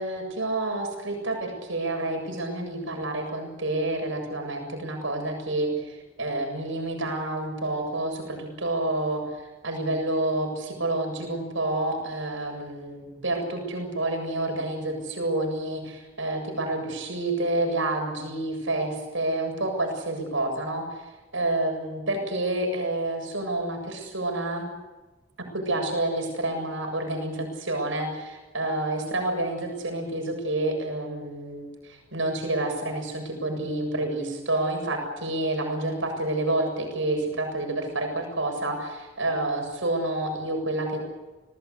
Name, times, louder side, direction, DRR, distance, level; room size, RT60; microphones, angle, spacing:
voice 1, 0.0-21.0 21.3-24.7 25.5-41.0, right 2 dB, 65° right, 4 dB, 7.6 m, -29 dB
27.5 x 19.0 x 8.4 m, 1.2 s
head